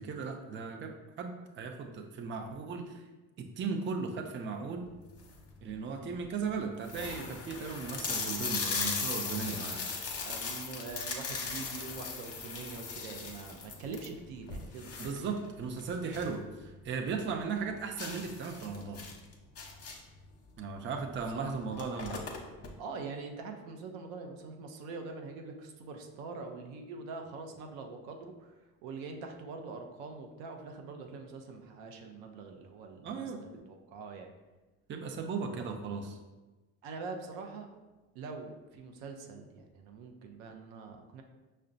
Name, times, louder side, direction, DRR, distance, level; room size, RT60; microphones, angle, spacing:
voice 1, 0.0-3.0 3.4-4.9 5.6-9.9 15.0-19.1 20.6-22.2 33.0-33.4 34.9-36.2, right 5 dB, 30° right, 3 dB, 0.5 m, -37 dB
sound 1, 5.0-5.5 6.1-6.2 6.4-6.5 6.8-16.4 16.7-16.8 17.2-17.3 18.0-20.2 21.2-21.3 21.6-22.7, left 4 dB, 35° left, 0.8 m, -38 dB
voice 2, 10.2-15.2 21.3-21.8 22.8-28.5 28.8-33.3 33.7-34.3 36.8-37.7 38.1-41.2, right 4 dB, 75° right, 4 dB, 0.6 m, -44 dB
5.5 x 2.1 x 2.5 m, 1.2 s
hypercardioid pair, 65°, 41 cm